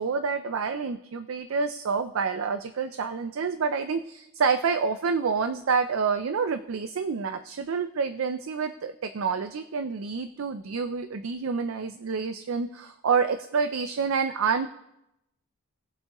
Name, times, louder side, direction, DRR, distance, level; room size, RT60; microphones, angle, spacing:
voice 1, 0.0-14.7, right 5 dB, 70° right, 9 dB, 0.4 m, -28 dB
19.0 x 7.5 x 3.0 m, 0.86 s
head